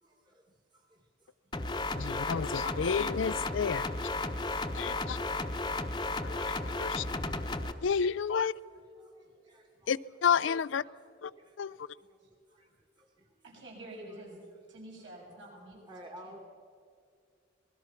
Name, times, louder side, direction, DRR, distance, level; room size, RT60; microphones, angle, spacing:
voice 1, 0.0-0.4 0.7-1.3 5.1-5.3 6.8-7.7 9.0-9.9 10.8-11.0 11.4-11.6 12.5-12.7 13.0-13.3 15.9-16.4, right 1 dB, 25° right, 1.6 m, -54 dB
sound 1, 1.5-7.7, left 2 dB, 20° left, 0.9 m, -34 dB
voice 2, 2.0-4.1 4.7-5.2 6.2-7.1 7.8-8.5 9.9-10.8 11.2-11.3 11.6-11.9, left 6 dB, 70° left, 0.4 m, -31 dB
voice 3, 13.4-14.4 14.7-15.8 16.0-16.4, right 1 dB, 65° right, 7.7 m, -48 dB
26.5 x 20.5 x 5.8 m
head